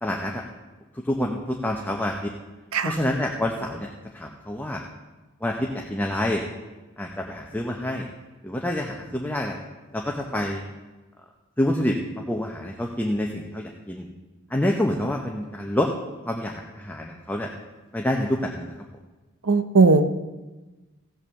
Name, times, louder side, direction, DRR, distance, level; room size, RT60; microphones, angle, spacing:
voice 1, 0.0-0.4 1.0-2.3 2.8-4.8 5.4-6.4 7.0-8.1 8.4-9.6 9.9-10.6 11.6-12.0 12.3-14.1 14.5-15.9 16.2-17.5 17.9-18.7, left 1 dB, 10° left, 0 dB, 0.7 m, -27 dB
voice 2, 19.5-20.1, right 3 dB, 80° right, 10 dB, 0.7 m, -17 dB
15.5 x 5.8 x 7.0 m, 1.2 s
head